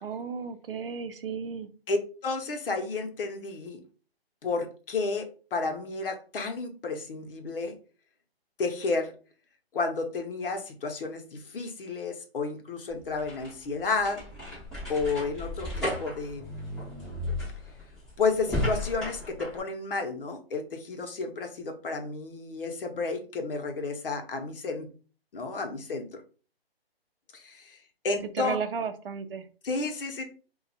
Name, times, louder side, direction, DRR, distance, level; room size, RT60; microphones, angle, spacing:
voice 1, 0.0-1.7 28.3-29.5, right 6 dB, 60° right, 8 dB, 0.6 m, -34 dB
voice 2, 1.9-3.8 4.4-7.7 8.6-9.1 9.7-14.2 14.9-16.4 18.2-24.9 25.3-26.1 27.3-27.8 28.0-28.6 29.6-30.2, left 4 dB, 60° left, 4 dB, 0.9 m, -31 dB
sound 1, 13.0-19.6, left 1 dB, ahead, 0.6 m, -34 dB
2.4 x 2.3 x 4.0 m, 0.37 s
hypercardioid pair, 150°, 31 cm